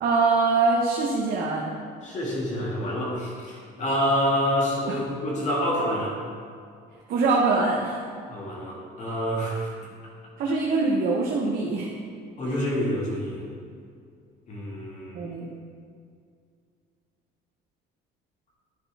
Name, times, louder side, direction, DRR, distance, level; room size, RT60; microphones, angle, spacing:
voice 1, 0.0-1.6 4.9-5.0 7.1-8.0 10.4-11.9 12.5-12.6 15.1-15.5, right 3 dB, 55° right, -3 dB, 1.2 m, -23 dB
voice 2, 2.0-6.2 8.3-9.7 12.4-13.4 14.5-15.3, equal, 40° left, -4 dB, 2.2 m, -27 dB
11.5 x 6.7 x 3.5 m, 2.3 s
cardioid pair, 120°, 19 cm